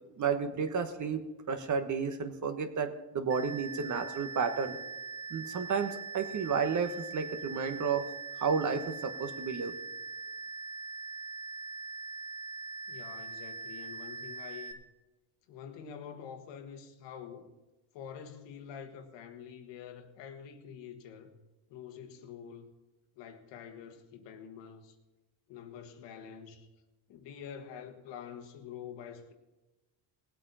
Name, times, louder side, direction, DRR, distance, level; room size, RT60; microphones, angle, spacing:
voice 1, 0.2-1.2 1.5-4.8 5.3-8.0 8.4-9.7, right 6 dB, 45° right, 1.3 m, -32 dB
sound 1, 3.3-14.7, right 4 dB, 70° right, 2.1 m, -42 dB
voice 2, 12.9-14.8 15.5-17.5 17.9-21.4 21.7-22.7 23.1-24.9 25.5-26.7 27.1-29.3, left 8 dB, 90° left, 1.6 m, -47 dB
19.0 x 8.4 x 4.2 m
cardioid pair, 120°, 42 cm